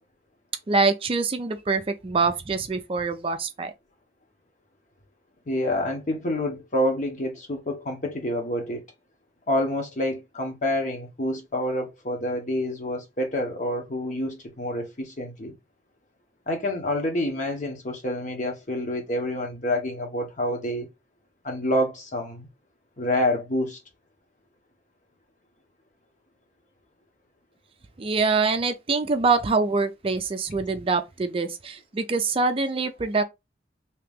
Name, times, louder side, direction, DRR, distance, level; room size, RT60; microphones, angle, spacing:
voice 1, 0.7-3.7 28.0-33.2, right 4 dB, 30° right, 0.4 m, -24 dB
voice 2, 5.5-8.8 9.5-15.5 16.5-20.9 21.4-22.5 23.0-23.8, left 1 dB, 45° left, 1.0 m, -27 dB
2.9 x 2.9 x 3.5 m
head